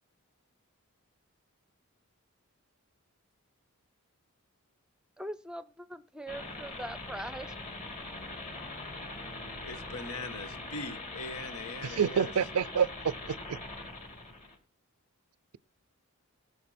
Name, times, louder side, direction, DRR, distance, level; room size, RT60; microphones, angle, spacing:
voice 1, 5.2-7.6, right 1 dB, 5° right, 0.5 m, -41 dB
sound 1, 6.3-14.6, left 2 dB, 35° left, 2.2 m, -42 dB
voice 2, 9.6-12.3, left 3 dB, 85° left, 1.3 m, -41 dB
voice 3, 11.8-13.6, right 7 dB, 85° right, 0.4 m, -28 dB
18.0 x 6.8 x 4.3 m
head